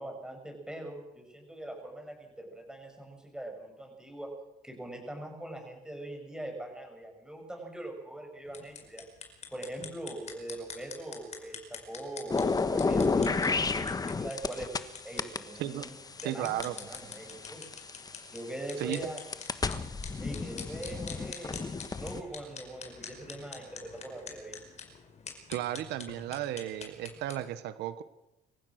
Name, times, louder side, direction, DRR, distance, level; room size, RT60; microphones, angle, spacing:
voice 1, 0.0-4.3 4.6-9.1 9.5-14.7 15.0-16.0 16.2-17.7 18.3-19.2 20.2-24.6, right 1 dB, 5° right, 2 dB, 7.4 m, -42 dB
sound 1, 8.5-27.4, left 6 dB, 40° left, 5.2 m, -47 dB
sound 2, 12.3-14.9 15.2-18.1 18.7-22.2, left 4 dB, 20° left, 1.4 m, -31 dB
voice 2, 16.2-16.7 18.8-19.0 25.5-28.0, right 13 dB, 85° right, 12 dB, 1.2 m, -34 dB
26.0 x 15.5 x 6.5 m, 0.92 s
cardioid pair, 110°, 17 cm